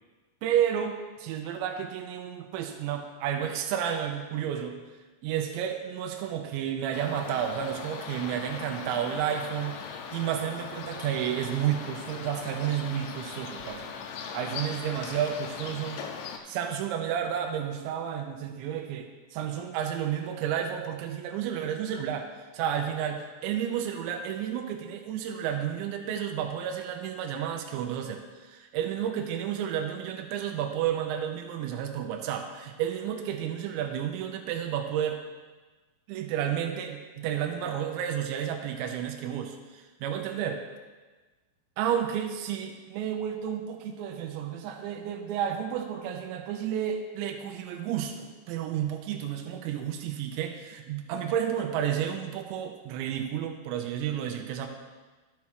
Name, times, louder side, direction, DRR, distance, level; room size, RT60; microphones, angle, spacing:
voice 1, 0.4-4.8 5.2-13.9 14.3-16.1 16.5-35.2 36.1-40.6 41.8-54.7, right 9 dB, 85° right, 4 dB, 2.9 m, -31 dB
sound 1, 6.9-16.4, left 6 dB, 80° left, 2.9 m, -39 dB
12.5 x 8.4 x 3.0 m, 1.3 s
omnidirectional pair, 5.5 m